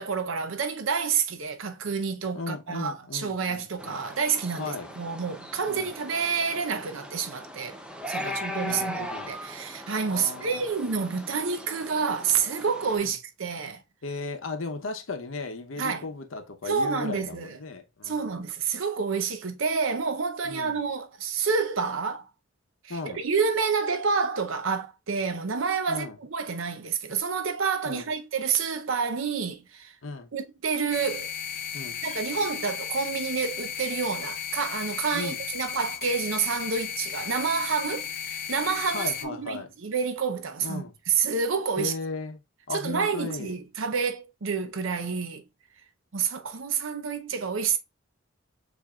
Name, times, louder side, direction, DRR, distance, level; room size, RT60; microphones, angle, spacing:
voice 1, 0.0-7.8 8.1-13.8 15.8-16.0 16.7-17.5 18.0-22.3 22.8-29.9 30.3-31.3 32.0-41.9 42.7-45.4 46.1-47.8, right 5 dB, 85° right, 0.7 m, -29 dB
voice 2, 2.3-4.0 4.6-4.9 5.6-5.9 8.2-9.4 10.1-10.6 13.0-13.2 14.0-18.3 20.4-20.8 22.9-23.2 25.9-26.2 27.8-28.1 30.0-30.3 31.7-32.0 35.1-35.4 38.9-39.7 40.6-40.9 41.8-42.4 42.7-43.6, left 3 dB, 85° left, 0.8 m, -36 dB
sound 1, 3.8-13.0, equal, 5° right, 0.5 m, -39 dB
sound 2, 30.9-39.3, left 8 dB, 50° left, 0.6 m, -35 dB
7.0 x 2.6 x 2.3 m
head